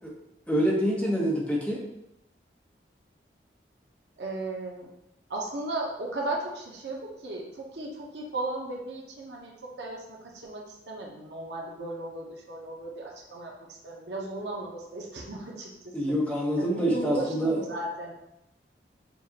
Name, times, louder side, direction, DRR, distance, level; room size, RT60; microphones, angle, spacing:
voice 1, 0.5-1.8 15.9-17.6, equal, 5° left, -4 dB, 0.9 m, -26 dB
voice 2, 4.2-4.9 5.3-15.9 16.6-18.1, right 2 dB, 75° right, -1 dB, 0.8 m, -36 dB
6.9 x 2.4 x 2.9 m, 0.85 s
head